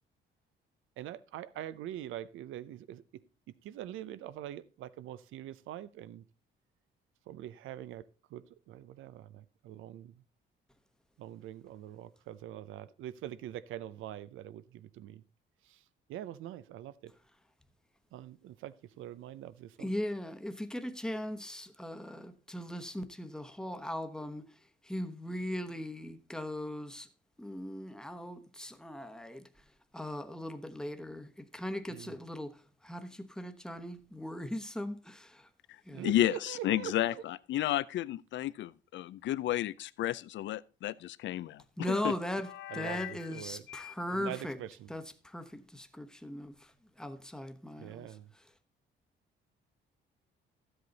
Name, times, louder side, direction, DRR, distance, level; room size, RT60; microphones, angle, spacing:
voice 1, 1.0-3.0 3.6-6.2 7.3-8.0 8.3-10.1 11.2-15.2 15.7-15.8 16.1-17.1 18.1-19.9 31.9-32.1 35.9-37.2 42.7-43.6 44.1-44.9 47.8-48.3, right 12 dB, 85° right, 0.6 m, -44 dB
voice 2, 19.8-24.4 24.8-27.1 27.4-29.5 29.9-35.5 35.9-36.1 41.8-44.6 44.9-46.7 47.0-48.1 48.3-48.4, left 1 dB, 5° left, 1.0 m, -39 dB
voice 3, 36.0-42.1 42.6-43.1 43.7-43.9, left 13 dB, 70° left, 0.5 m, -32 dB
12.5 x 8.0 x 4.0 m
cardioid pair, 90°, 20 cm